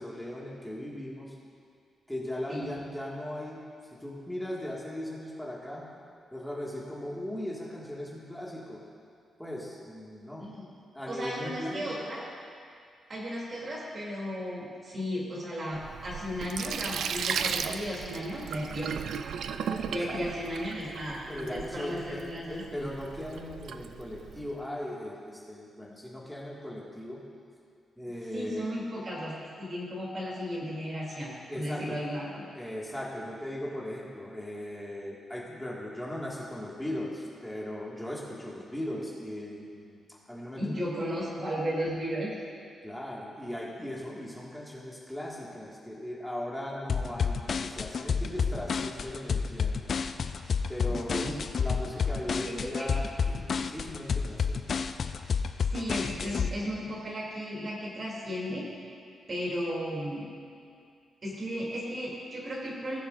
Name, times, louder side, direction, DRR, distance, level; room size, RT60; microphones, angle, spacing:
voice 1, 0.0-1.3 2.1-3.6 3.9-5.9 6.3-8.8 9.4-10.5 10.9-11.9 19.4-20.2 21.3-27.2 28.0-28.6 31.5-32.0 32.5-40.0 40.3-40.6 42.8-49.9 50.7-51.2 51.6-54.6, left 1 dB, 5° left, -5 dB, 1.8 m, -38 dB
voice 2, 11.0-12.2 13.1-19.0 19.9-22.9 28.3-29.3 29.6-32.5 40.6-42.4 50.9-51.4 52.4-53.0 55.7-58.7 59.3-60.3 61.2-63.0, equal, 45° right, -4 dB, 2.7 m, -35 dB
Sink (filling or washing), 15.7-24.5, right 7 dB, 80° right, 0.3 m, -36 dB
sound 1, 46.9-56.5, left 6 dB, 55° left, 0.4 m, -29 dB
19.0 x 7.1 x 2.5 m, 2.3 s
cardioid pair, 80°, 0 cm